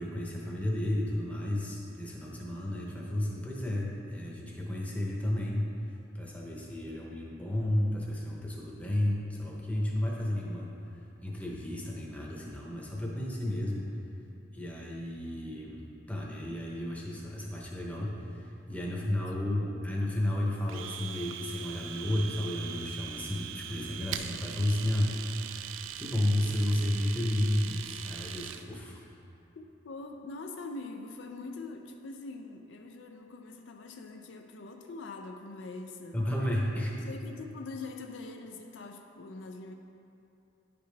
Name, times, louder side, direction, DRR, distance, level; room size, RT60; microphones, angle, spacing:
voice 1, 0.0-13.9 14.5-15.8 16.1-25.7 25.9-29.0 36.1-36.9, left 1 dB, 10° left, -3 dB, 0.8 m, -32 dB
voice 2, 19.5-20.4 24.1-24.4 29.6-36.3 37.0-39.7, left 3 dB, 70° left, 4 dB, 0.4 m, -43 dB
Domestic sounds home sounds, 20.7-28.6, right 10 dB, 90° right, 0.3 m, -41 dB
9.9 x 5.1 x 3.3 m, 2.8 s
head